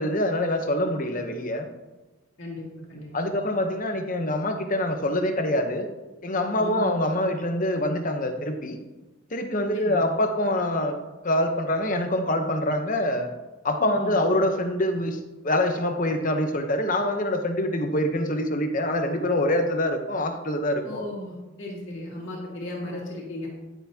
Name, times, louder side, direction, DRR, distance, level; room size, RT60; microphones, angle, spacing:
voice 1, 0.0-1.7 3.1-5.9 6.2-8.8 9.3-11.0 11.2-13.3 13.6-15.2 15.4-21.1, left 1 dB, 40° left, 5 dB, 0.9 m, -25 dB
voice 2, 2.4-3.3 6.6-7.0 9.7-10.0 13.8-14.3 20.8-23.5, left 1 dB, 60° left, -4 dB, 2.1 m, -36 dB
10.5 x 9.4 x 2.8 m, 1.1 s
head